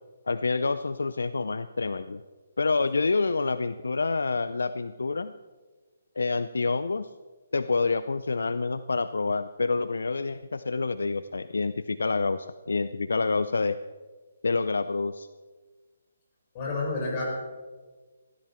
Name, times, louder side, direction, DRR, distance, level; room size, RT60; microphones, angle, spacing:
voice 1, 0.3-2.2 2.6-5.3 6.2-7.1 7.5-13.8 14.4-15.3, left 4 dB, 75° left, 14 dB, 0.5 m, -27 dB
voice 2, 16.5-17.2, left 3 dB, 35° left, -2 dB, 6.2 m, -29 dB
16.0 x 15.5 x 4.4 m, 1.3 s
figure-of-eight pair, 145°, 0 cm